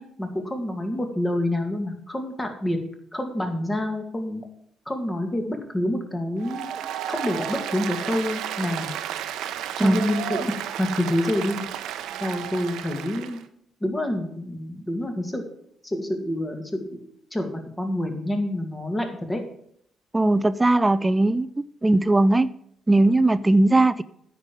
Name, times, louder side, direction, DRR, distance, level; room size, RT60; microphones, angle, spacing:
voice 1, 0.0-2.8 3.1-4.4 4.9-6.7 7.1-8.9 9.8-11.7 12.2-13.4 13.8-15.5 15.8-17.0 17.3-19.4, left 1 dB, 15° left, 5 dB, 2.1 m, -27 dB
Applause, 6.4-13.4, right 10 dB, 85° right, 0.7 m, -32 dB
voice 2, 20.1-21.5 21.8-22.5 22.9-24.0, right 2 dB, 15° right, 16 dB, 0.4 m, -19 dB
9.6 x 5.3 x 7.4 m, 0.68 s
cardioid pair, 90°, 0 cm